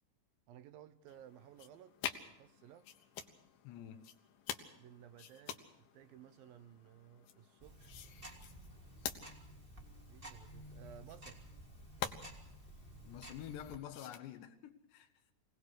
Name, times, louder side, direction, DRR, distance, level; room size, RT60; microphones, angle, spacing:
voice 1, 0.5-2.0 2.3-2.9 4.7-8.0 10.1-11.4, right 10 dB, 70° right, 2.5 m, -57 dB
sound 1, 1.1-14.2, left 9 dB, 70° left, 2.8 m, -49 dB
voice 2, 3.6-4.1 13.0-15.2, left 10 dB, 85° left, 3.3 m, -48 dB
Tick-tock, 7.6-13.8, right 1 dB, 15° right, 2.1 m, -53 dB
24.5 x 18.5 x 6.4 m
omnidirectional pair, 4.8 m